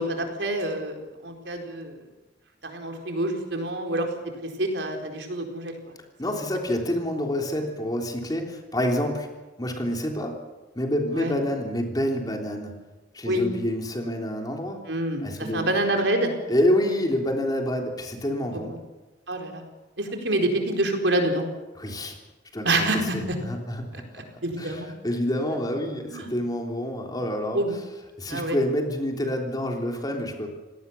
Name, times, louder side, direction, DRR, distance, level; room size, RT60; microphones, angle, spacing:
voice 1, 0.0-2.0 2.6-4.1 4.4-5.8 11.1-11.3 13.3-13.5 14.9-15.3 15.5-16.3 18.5-18.6 19.3-19.6 20.0-21.5 22.6-23.4 23.9-24.9 26.1-26.3 27.5-27.8 28.3-28.6, right 1 dB, 80° right, 4 dB, 4.3 m, -27 dB
voice 2, 6.2-9.3 9.6-10.3 10.7-12.8 13.1-14.8 15.2-15.7 16.5-18.8 21.8-22.1 22.5-22.7 23.1-24.0 24.6-27.6 28.2-30.5, equal, 20° left, 2 dB, 3.4 m, -27 dB
27.0 x 18.5 x 7.1 m, 1.2 s
head